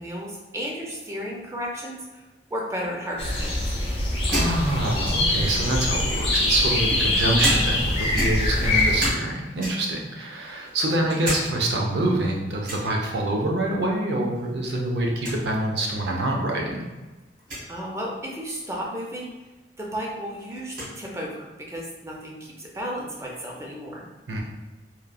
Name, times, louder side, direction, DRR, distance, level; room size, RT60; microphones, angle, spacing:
voice 1, 0.0-2.2 2.5-3.6 17.7-19.3 19.8-24.0, equal, 15° right, -2 dB, 0.5 m, -33 dB
sound 1, 3.2-9.1, left 1 dB, 35° left, 0.5 m, -23 dB
sound 2, 4.3-5.5 6.3-7.9 8.1-9.3 9.6-10.0 10.5-11.5 11.8-11.9 12.6-12.9 14.3-14.7 15.0-15.1 15.2-15.4 16.2-16.3 17.4-17.7 19.4-19.5 19.8-20.9, equal, 50° right, 1.1 m, -31 dB
voice 2, 4.3-16.8 24.3-24.4, right 1 dB, 70° right, 0 dB, 0.6 m, -26 dB
3.0 x 2.4 x 2.3 m, 1.2 s
head